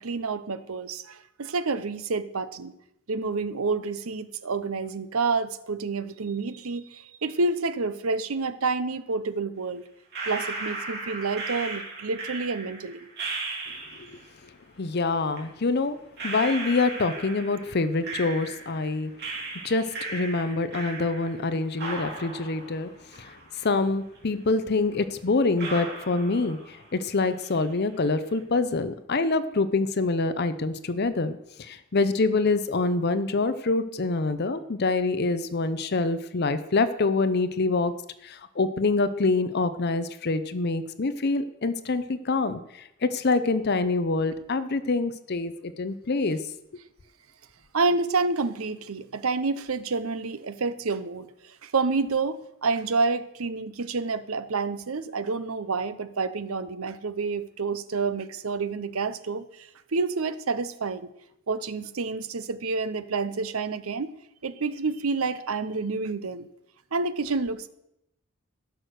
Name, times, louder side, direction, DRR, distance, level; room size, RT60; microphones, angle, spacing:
voice 1, 0.0-2.7 3.1-9.8 10.3-13.1 47.7-61.1 61.5-64.1 64.4-66.5 66.9-67.7, right 4 dB, 75° right, 14 dB, 0.7 m, -29 dB
sound 1, 10.1-14.2 15.3-15.4 16.2-18.9 19.2-21.5 21.8-23.8 24.1-24.2 24.9-25.0 25.6-26.9 27.2-27.7, right 3 dB, 50° right, 3.1 m, -36 dB
voice 2, 14.0-14.5 14.8-16.0 16.2-37.9 38.2-46.4, left 3 dB, 50° left, 12 dB, 0.6 m, -26 dB
15.5 x 6.4 x 6.6 m, 0.82 s
head